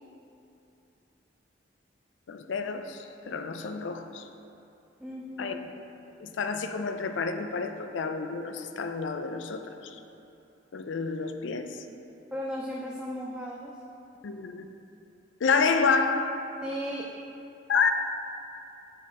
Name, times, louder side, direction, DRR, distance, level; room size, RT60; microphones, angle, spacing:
voice 1, 2.3-4.2 5.4-5.6 6.2-10.0 10.7-11.8 14.2-14.7 15.4-16.4 17.7-17.9, left 5 dB, 75° left, 7 dB, 0.4 m, -29 dB
voice 2, 5.0-5.6 12.3-13.7 16.6-17.1, equal, 5° right, -3 dB, 0.3 m, -35 dB
7.4 x 4.3 x 5.0 m, 2.8 s
head